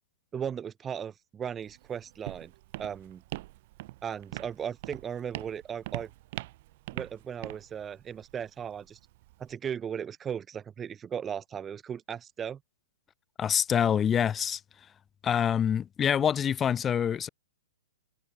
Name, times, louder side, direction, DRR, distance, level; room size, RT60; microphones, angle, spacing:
voice 1, 0.3-2.5 2.8-3.2 4.0-6.1 6.9-9.0 9.4-12.6, right 8 dB, 15° right, 3.5 m, -37 dB
Walk footsteps, 1.6-9.5, right 19 dB, 40° right, 4.2 m, -43 dB
voice 2, 13.4-14.6 15.2-17.3, left 8 dB, 15° left, 1.0 m, -26 dB
hypercardioid pair, 155°, 0 cm